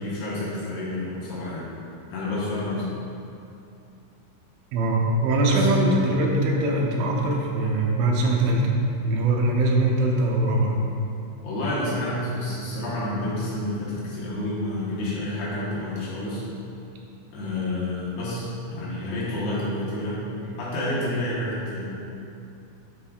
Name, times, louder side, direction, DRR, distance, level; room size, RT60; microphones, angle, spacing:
voice 1, 0.0-1.7 2.1-2.9 5.4-6.1 11.4-16.4 17.3-21.9, left 1 dB, 70° left, -7 dB, 2.9 m, -29 dB
voice 2, 4.7-8.7 9.0-10.8, right 2 dB, 85° right, -1 dB, 3.3 m, -22 dB
9.8 x 7.3 x 2.4 m, 2.7 s
omnidirectional pair, 5.4 m